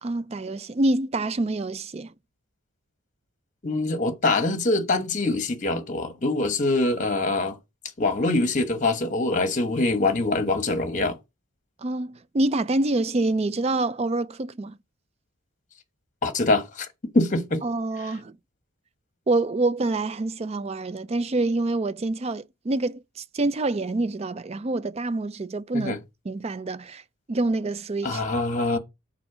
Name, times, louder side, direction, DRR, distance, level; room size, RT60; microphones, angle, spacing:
voice 1, 0.0-2.1 11.8-14.8 17.6-18.4 19.3-26.0 26.3-27.0 27.3-28.2, right 2 dB, 30° right, 0.4 m, -26 dB
voice 2, 3.6-7.6 8.0-11.2 16.2-16.9 17.1-17.6 25.7-26.0 28.0-28.8, left 2 dB, 35° left, 1.2 m, -24 dB
6.1 x 4.3 x 6.0 m
head